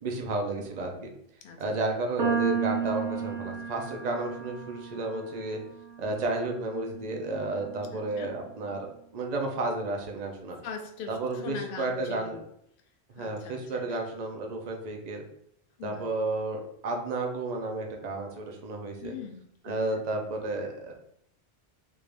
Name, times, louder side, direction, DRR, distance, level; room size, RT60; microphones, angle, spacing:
voice 1, 0.0-1.1 1.6-5.6 6.0-8.9 9.1-10.6 11.1-12.4 13.1-15.2 15.8-19.1 19.6-20.9, right 2 dB, 45° right, 2 dB, 0.6 m, -32 dB
voice 2, 1.4-1.8 7.9-8.3 10.6-11.2 11.4-12.4 13.2-14.0 15.8-16.0 19.0-19.4 19.6-19.8, left 6 dB, 60° left, 4 dB, 0.7 m, -41 dB
sound 1, 2.2-8.5, right 6 dB, 80° right, 1.1 m, -34 dB
3.5 x 2.5 x 3.3 m, 0.72 s
omnidirectional pair, 1.2 m